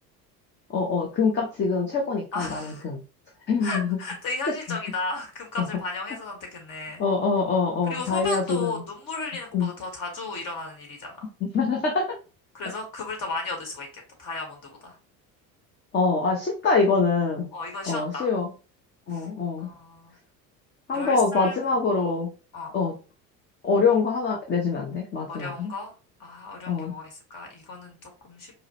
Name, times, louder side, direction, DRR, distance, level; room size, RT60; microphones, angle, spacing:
voice 1, 0.7-3.0 3.5-4.0 7.0-8.8 9.5-9.7 11.4-12.2 15.9-17.5 17.9-18.5 19.1-19.7 20.9-22.3 22.7-22.9 23.6-25.7 26.7-26.9, left 4 dB, 20° left, 0 dB, 0.7 m, -24 dB
voice 2, 2.3-2.8 3.6-7.1 7.9-11.3 12.5-13.9 14.2-14.9 17.5-18.3 19.1-19.3 19.6-20.1 20.9-21.6 22.5-22.8 25.3-25.9 26.2-28.5, left 3 dB, 40° left, 2 dB, 1.6 m, -34 dB
4.7 x 2.0 x 2.8 m, 0.34 s
figure-of-eight pair, 65°, 50 cm